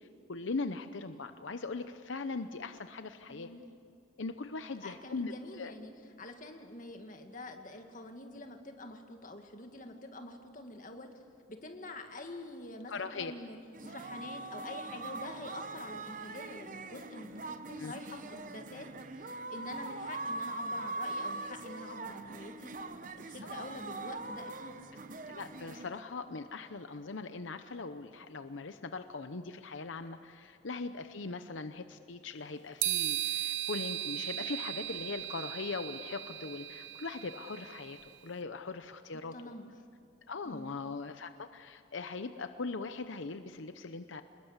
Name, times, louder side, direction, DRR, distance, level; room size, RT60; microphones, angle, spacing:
voice 1, 0.0-3.5 4.2-5.3 5.6-5.7 12.9-13.3 17.8-17.9 25.3-39.3 40.3-44.2, left 4 dB, 80° left, 9 dB, 0.8 m, -40 dB
voice 2, 3.3-3.7 4.8-5.9 6.2-11.1 11.5-13.6 13.8-17.3 17.7-18.9 19.1-24.8 39.3-39.7 40.4-40.8, left 2 dB, 40° left, 4 dB, 2.1 m, -46 dB
sound 1, 13.7-26.0, right 2 dB, 40° right, 0.9 m, -42 dB
sound 2, 32.8-38.1, right 13 dB, 70° right, 0.9 m, -37 dB
28.0 x 21.0 x 8.2 m, 2.4 s
head